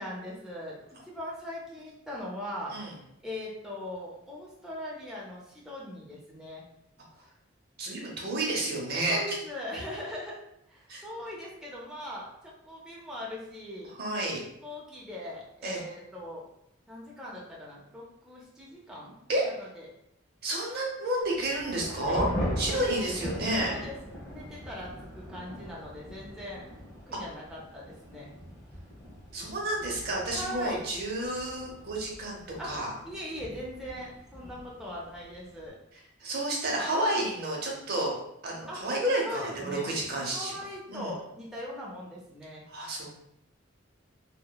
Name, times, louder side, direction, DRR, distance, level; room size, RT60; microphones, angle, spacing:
voice 1, 0.0-2.8 3.2-6.6 9.1-10.4 10.7-13.9 14.6-16.4 16.9-19.2 19.4-19.9 21.9-22.2 22.7-23.2 23.7-24.0 24.2-26.7 27.1-28.3 30.3-30.8 32.6-35.8 38.7-38.8 39.2-39.9 40.3-42.6, left 1 dB, 5° right, -5 dB, 0.5 m, -40 dB
voice 2, 7.8-9.4 10.9-11.0 14.0-14.4 15.6-15.8 19.3-19.4 20.4-22.3 22.6-23.8 29.3-32.4 32.6-32.9 36.2-38.1 38.4-40.5 40.9-41.1 42.7-43.1, right 1 dB, 50° right, -1 dB, 0.6 m, -30 dB
Thunder / Rain, 21.2-35.7, equal, 15° left, 1.0 m, -40 dB
2.9 x 2.0 x 2.2 m, 0.79 s
head